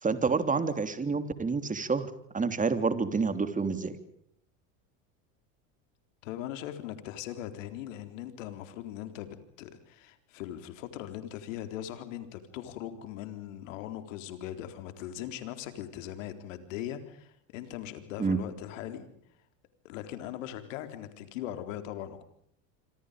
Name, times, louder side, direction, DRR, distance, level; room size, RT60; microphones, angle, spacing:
voice 1, 0.0-4.0 18.2-18.4, right 4 dB, 20° right, 10 dB, 3.5 m, -28 dB
voice 2, 6.2-19.1 19.8-22.2, left 11 dB, 80° left, 9 dB, 4.0 m, -40 dB
27.0 x 26.0 x 5.2 m, 0.69 s
supercardioid pair, 95°, 38 cm